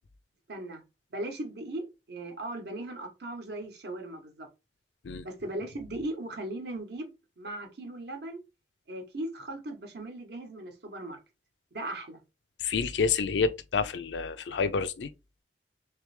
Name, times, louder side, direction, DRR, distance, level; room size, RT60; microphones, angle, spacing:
voice 1, 0.5-0.8 1.1-4.5 5.2-7.1 7.4-8.4 8.9-11.2 11.7-12.2, right 1 dB, 65° right, 1.0 m, -38 dB
voice 2, 12.6-15.1, left 5 dB, 80° left, 0.5 m, -28 dB
3.4 x 3.3 x 3.2 m
head